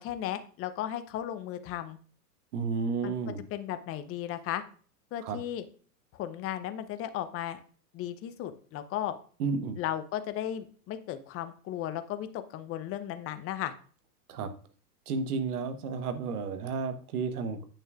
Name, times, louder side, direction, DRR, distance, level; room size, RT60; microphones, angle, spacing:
voice 1, 0.0-2.0 3.0-3.1 3.5-4.6 5.1-5.6 6.1-7.6 7.9-9.2 9.7-13.7, left 11 dB, 30° left, 11 dB, 0.7 m, -35 dB
voice 2, 2.5-3.4 5.2-5.4 9.4-9.8 14.3-14.5 15.1-17.7, right 4 dB, 70° right, 9 dB, 1.3 m, -32 dB
8.7 x 6.3 x 2.5 m, 0.42 s
hypercardioid pair, 110°, 47 cm